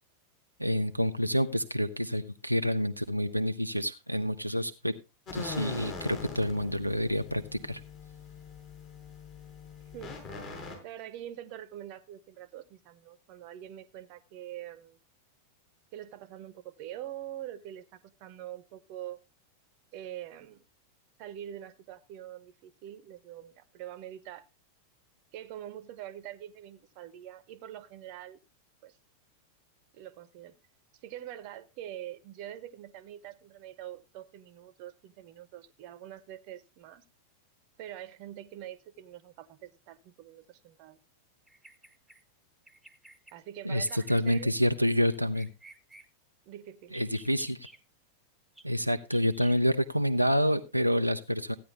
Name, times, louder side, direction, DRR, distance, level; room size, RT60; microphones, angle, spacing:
voice 1, 0.6-4.9 5.3-7.8 43.6-45.5 46.9-47.7 48.6-51.5, equal, 90° right, 6 dB, 0.6 m, -28 dB
sound 1, 5.3-10.8, left 4 dB, 35° left, 5.2 m, -42 dB
voice 2, 9.9-10.2 10.8-15.0 15.9-19.2 19.9-20.6 21.2-24.5 25.3-28.4 28.8-29.0 29.9-30.5 31.0-37.0 37.8-41.0 43.3-44.5 46.5-47.0, right 12 dB, 45° right, 16 dB, 1.0 m, -44 dB
Bird vocalization bird call bird song, 41.5-42.2 42.7-43.3 43.8-44.4 45.1-46.1 46.8-47.8 48.6-48.7 49.1-49.6, right 2 dB, ahead, 1.4 m, -53 dB
15.0 x 9.5 x 3.3 m, 0.26 s
figure-of-eight pair, 90°, 0 cm